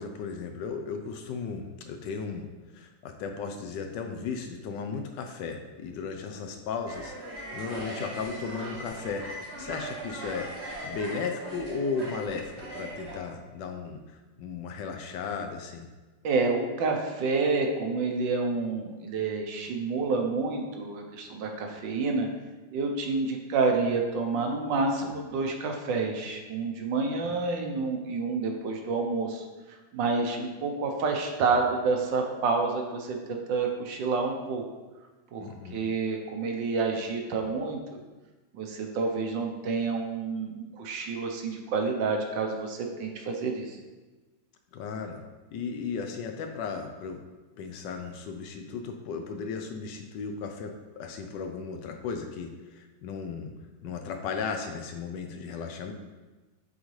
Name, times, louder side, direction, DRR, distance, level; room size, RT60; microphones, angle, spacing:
voice 1, 0.0-2.5 2.7-9.3 9.6-14.0 14.4-15.8 35.4-35.8 44.7-45.2 45.5-47.2 47.6-53.5 53.8-55.9, left 5 dB, 75° left, 5 dB, 1.2 m, -35 dB
sound 1, 6.9-13.2, right 1 dB, 15° right, 1.8 m, -39 dB
voice 2, 16.2-22.3 22.7-29.4 29.9-34.6 35.3-37.8 38.5-43.8, right 4 dB, 80° right, 2 dB, 1.5 m, -29 dB
8.1 x 3.9 x 3.2 m, 1.2 s
omnidirectional pair, 2.0 m